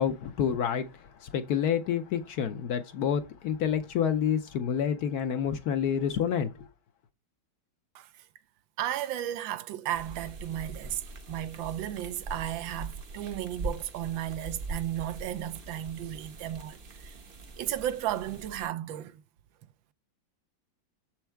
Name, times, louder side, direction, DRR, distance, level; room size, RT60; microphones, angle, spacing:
voice 1, 0.0-6.7, left 8 dB, 65° left, 1.0 m, -28 dB
voice 2, 8.8-17.2 17.6-19.2, right 12 dB, 85° right, 1.4 m, -34 dB
sound 1, 9.9-18.7, right 3 dB, 45° right, 0.7 m, -42 dB
7.1 x 4.6 x 4.4 m
omnidirectional pair, 2.1 m